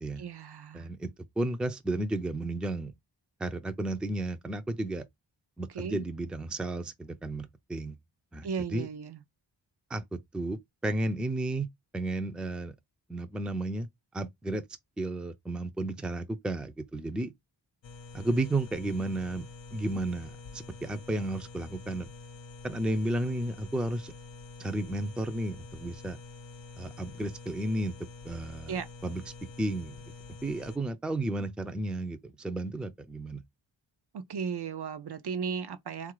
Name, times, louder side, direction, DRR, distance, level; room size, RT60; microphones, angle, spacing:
voice 1, 0.2-0.9 5.7-6.0 8.4-9.2 28.7-28.9 34.1-36.1, right 6 dB, 60° right, 0.6 m, -35 dB
voice 2, 0.7-2.9 3.4-5.0 5.6-8.0 8.3-8.9 9.9-11.7 11.9-12.7 13.1-13.9 14.1-14.6 15.0-17.3 18.1-19.4 19.7-22.1 22.6-24.1 24.6-26.2 26.8-27.9 28.2-28.8 29.0-29.2 29.6-30.0 30.4-33.4, right 2 dB, ahead, 0.4 m, -33 dB
sound 1, 17.8-30.8, left 3 dB, 75° left, 0.7 m, -47 dB
3.8 x 2.5 x 4.6 m
wide cardioid pair, 120°, 45 cm